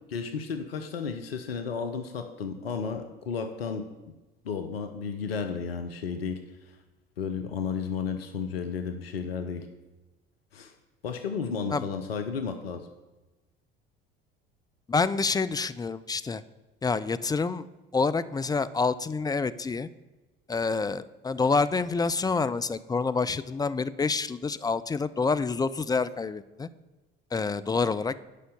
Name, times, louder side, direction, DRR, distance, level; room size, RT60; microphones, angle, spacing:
voice 1, 0.1-4.1 4.4-6.4 7.2-9.7 10.5-10.7 11.0-12.9, left 6 dB, 85° left, 7 dB, 0.7 m, -33 dB
voice 2, 14.9-16.4 16.8-17.6 17.9-19.9 20.5-26.7 27.3-28.2, left 4 dB, 15° left, 14 dB, 0.4 m, -27 dB
8.4 x 5.6 x 6.7 m, 1.1 s
hypercardioid pair, 60°, 29 cm